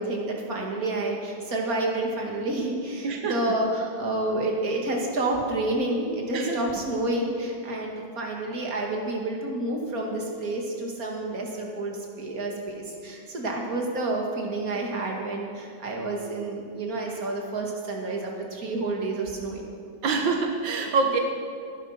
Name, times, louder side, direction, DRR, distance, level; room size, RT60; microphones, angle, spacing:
voice 1, 0.0-19.6, right 2 dB, 50° right, 0 dB, 2.5 m, -29 dB
voice 2, 3.0-3.4 6.3-6.6 20.0-21.2, right 4 dB, 90° right, 3 dB, 1.8 m, -25 dB
16.0 x 11.0 x 5.8 m, 2.3 s
omnidirectional pair, 2.0 m